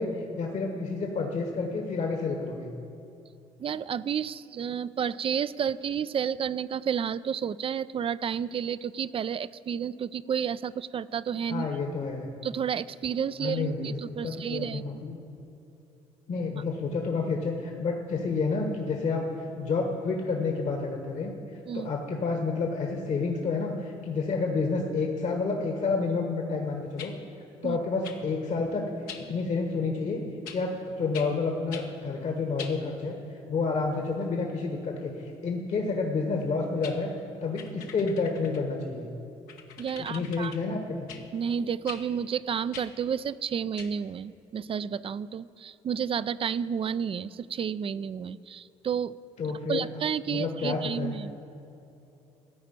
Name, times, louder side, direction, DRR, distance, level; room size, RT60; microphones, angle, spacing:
voice 1, 0.0-2.7 11.5-12.3 13.4-15.2 16.3-21.3 21.7-27.1 27.6-28.9 29.3-30.2 30.5-33.2 33.5-37.1 37.4-39.1 40.1-41.1 49.4-49.9 50.3-51.1, left 4 dB, 50° left, 2 dB, 1.3 m, -29 dB
voice 2, 3.6-11.7 12.4-15.0 21.7-21.9 27.6-27.8 39.8-40.5 41.3-49.2 49.7-51.4, right 7 dB, 40° right, 17 dB, 0.4 m, -31 dB
sound 1, 27.0-27.1 28.0-28.2 29.1-29.2 30.5-30.6 31.1-31.3 31.7-31.9 32.6-32.8 36.4-36.5 36.8-37.0 37.6-38.7 39.5-40.6 41.1-41.2 41.9-42.0 42.7-42.9 43.8-43.9, left 7 dB, 75° left, 0.9 m, -43 dB
13.5 x 5.0 x 8.9 m, 2.8 s
hypercardioid pair, 50°, 15 cm